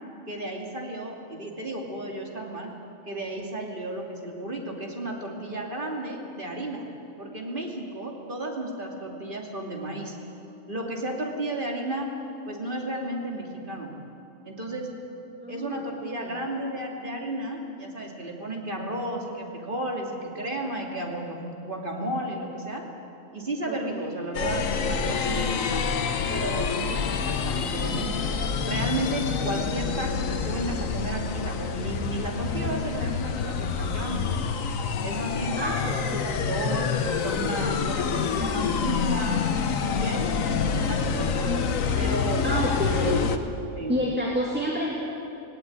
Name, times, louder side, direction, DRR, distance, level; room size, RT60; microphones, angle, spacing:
voice 1, 0.3-2.7 3.1-6.9 7.2-10.2 10.7-12.1 12.5-13.9 14.4-14.9 15.5-22.8 23.3-25.8 26.3-34.3 35.0-36.9 37.2-39.4 39.9-41.5 41.9-42.4 43.8-44.0, right 1 dB, 40° right, 0 dB, 2.9 m, -33 dB
voice 2, 15.4-16.5 23.7-24.2 35.5-36.4 42.4-43.4 43.9-44.9, equal, 5° right, -4 dB, 2.3 m, -29 dB
sound 1, 24.3-43.4, left 6 dB, 80° left, 1.4 m, -27 dB
18.0 x 17.5 x 9.7 m, 2.8 s
omnidirectional pair, 1.4 m